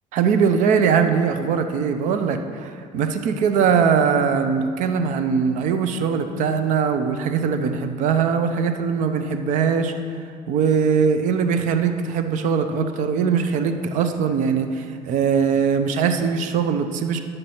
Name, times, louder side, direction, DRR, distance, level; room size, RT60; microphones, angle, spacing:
voice 1, 0.1-9.9 10.5-17.2, right 6 dB, 60° right, 8 dB, 0.6 m, -21 dB
10.0 x 6.6 x 4.3 m, 2.2 s
cardioid pair, 160°, 15 cm